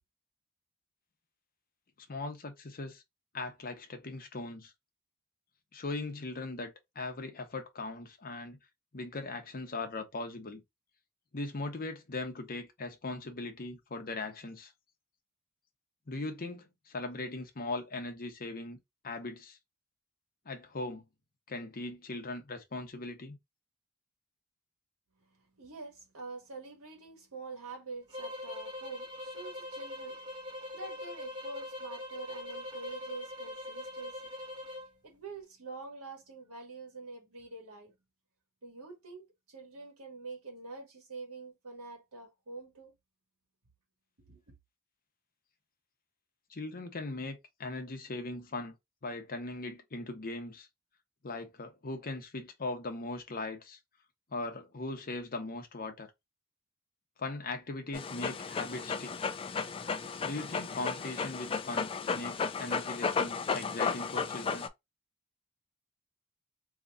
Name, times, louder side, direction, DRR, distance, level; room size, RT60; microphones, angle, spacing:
voice 1, 2.1-3.0 3.3-4.7 5.7-8.6 8.9-10.6 11.3-14.7 16.1-18.8 19.0-19.6 20.4-21.0 21.5-23.4 46.5-48.7 49.0-50.7 51.2-53.8 54.3-56.1 57.2-59.3 60.2-64.7, left 2 dB, 40° left, 0.8 m, -39 dB
voice 2, 25.2-34.3 34.8-37.9 38.6-42.9 44.2-44.4, right 3 dB, 75° right, 1.5 m, -46 dB
sound 1, 28.1-34.9, left 1 dB, 20° right, 1.5 m, -42 dB
Dog, 57.9-64.7, left 5 dB, 25° left, 0.3 m, -34 dB
3.8 x 2.9 x 2.3 m
head